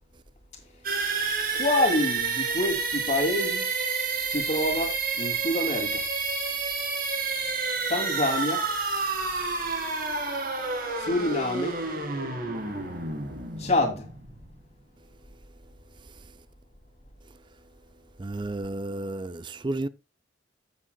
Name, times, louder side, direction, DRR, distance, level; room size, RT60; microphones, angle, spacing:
sound 1, 0.8-14.5, right 4 dB, 50° right, 2.1 m, -29 dB
voice 1, 1.5-3.7 4.3-6.0 7.9-8.7 11.0-11.7 13.6-14.1, left 1 dB, 35° left, 2.7 m, -27 dB
voice 2, 18.2-19.9, right 2 dB, 25° right, 0.5 m, -32 dB
15.0 x 7.4 x 2.3 m
head